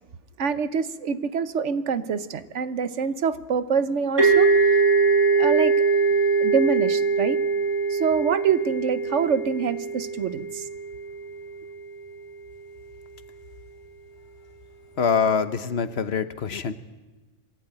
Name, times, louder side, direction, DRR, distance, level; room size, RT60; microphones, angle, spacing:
voice 1, 0.4-4.8 5.3-5.7 6.4-7.4 7.9-10.7, right 6 dB, 75° right, 13 dB, 1.2 m, -25 dB
sound 1, 4.2-11.7, right 4 dB, 20° right, 4.5 m, -22 dB
voice 2, 15.0-16.7, left 6 dB, 60° left, 12 dB, 1.2 m, -24 dB
23.5 x 15.5 x 9.0 m, 1.2 s
omnidirectional pair, 1.2 m